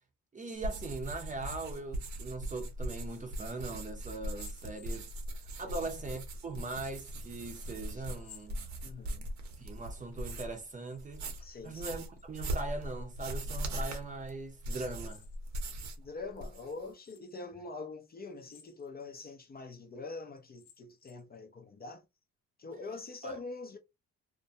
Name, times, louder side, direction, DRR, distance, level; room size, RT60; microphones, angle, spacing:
voice 1, 0.3-5.1 5.6-8.6 9.6-11.3 11.6-15.2 23.2-23.4, right 3 dB, 25° right, 0.6 m, -40 dB
sound 1, 0.6-10.6 11.0-16.1 16.3-16.9, right 1 dB, 70° right, 0.7 m, -40 dB
sound 2, 4.2-5.4 6.4-7.0 8.1-9.3 10.3-11.0 11.3-12.3 13.3-13.9 15.0-15.8 16.3-16.4 17.0-17.5 18.3-19.1 19.6-19.7 20.4-21.4, left 9 dB, 75° left, 0.8 m, -59 dB
voice 2, 8.8-9.3 11.4-11.9 16.0-22.0 22.6-23.8, left 3 dB, 30° left, 0.5 m, -44 dB
2.2 x 2.1 x 2.6 m
cardioid pair, 90°, 30 cm